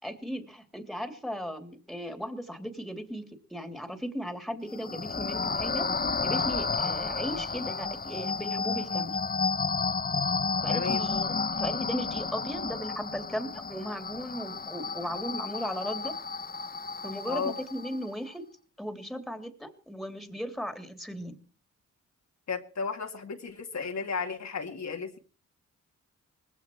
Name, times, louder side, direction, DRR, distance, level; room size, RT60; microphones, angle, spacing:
voice 1, 0.0-3.2 3.5-5.9 6.2-9.2 10.6-16.1 17.0-18.4 18.8-21.4, equal, ahead, 7 dB, 3.1 m, -36 dB
sound 1, 4.7-18.1, left 4 dB, 30° left, 0.9 m, -31 dB
voice 2, 10.7-11.1 17.3-17.6 22.5-25.2, left 5 dB, 60° left, 4 dB, 2.2 m, -34 dB
19.5 x 15.5 x 4.6 m, 0.40 s
cardioid pair, 70°, 31 cm